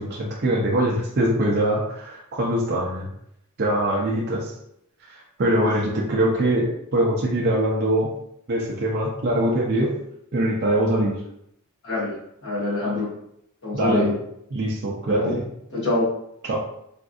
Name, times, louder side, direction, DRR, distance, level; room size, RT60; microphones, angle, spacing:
voice 1, 0.0-3.1 3.6-4.5 5.1-8.1 8.5-10.0 10.3-11.2 13.7-14.1 14.5-15.4 16.4-16.6, right 1 dB, 50° right, -3 dB, 0.5 m, -23 dB
voice 2, 12.4-13.1 13.6-14.1 15.0-15.3 15.7-16.1, left 2 dB, 55° left, -8 dB, 1.5 m, -24 dB
3.5 x 2.5 x 2.3 m, 0.75 s
head